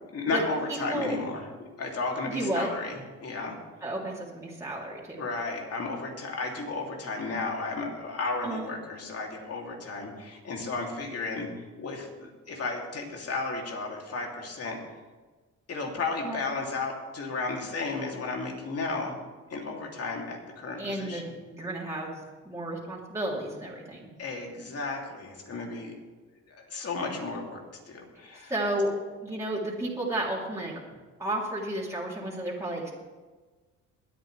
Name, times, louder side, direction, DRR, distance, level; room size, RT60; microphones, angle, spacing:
voice 1, 0.1-3.6 5.2-11.5 11.8-14.8 15.7-19.1 19.5-21.3 24.2-25.9 26.5-27.6 27.8-28.5, left 3 dB, 55° left, 0 dB, 3.1 m, -33 dB
voice 2, 0.7-1.1 2.2-2.7 3.8-5.2 8.4-8.7 16.2-16.4 20.8-24.1 28.3-28.9 29.2-30.7 31.2-32.9, right 1 dB, 10° right, -5 dB, 3.2 m, -32 dB
22.0 x 9.1 x 3.4 m, 1.3 s
cardioid pair, 90°, 30 cm